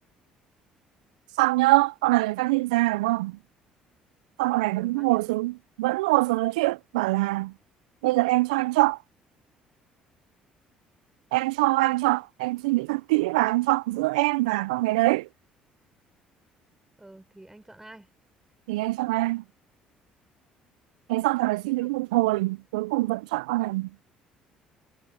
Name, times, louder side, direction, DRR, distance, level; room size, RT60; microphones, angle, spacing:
voice 1, 1.4-3.4 4.4-7.5 8.0-9.0 11.3-15.3 18.7-19.4 21.1-23.9, right 21 dB, 80° right, 0.5 m, -24 dB
voice 2, 4.7-5.4 17.0-18.1 21.6-22.0, right 1 dB, 10° right, 4.7 m, -50 dB
hypercardioid pair, 55°, 4 cm